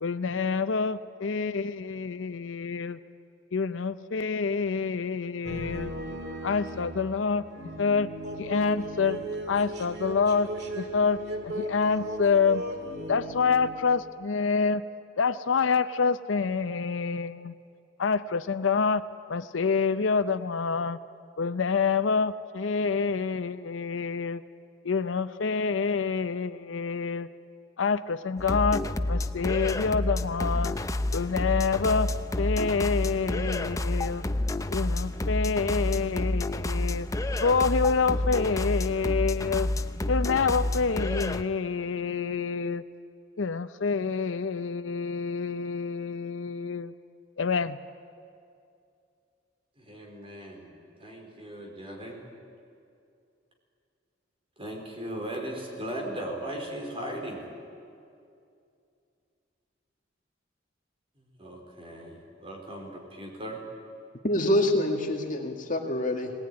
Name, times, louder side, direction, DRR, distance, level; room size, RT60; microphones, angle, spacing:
voice 1, 0.0-3.0 3.5-5.9 6.4-7.5 7.8-8.1 8.4-9.2 9.5-10.5 10.8-12.6 13.1-14.8 15.2-17.5 18.0-19.0 19.3-21.0 21.4-24.4 24.8-27.3 27.8-28.8 29.1-30.8 31.1-32.1 32.4-34.2 34.7-37.1 37.4-39.7 40.1-42.8 43.4-46.9 47.4-47.8, left 5 dB, 85° left, 12 dB, 0.6 m, -27 dB
sound 1, 5.4-14.0, right 1 dB, 60° right, 2.1 m, -37 dB
sound 2, 28.4-41.4, left 2 dB, 15° left, 0.6 m, -29 dB
voice 2, 49.8-50.7 51.0-52.2 54.6-57.4 61.4-63.6, right 1 dB, 30° right, 1 dB, 4.2 m, -38 dB
voice 3, 64.2-66.3, left 1 dB, 45° left, 2 dB, 2.0 m, -26 dB
19.5 x 19.5 x 9.7 m, 2.5 s
head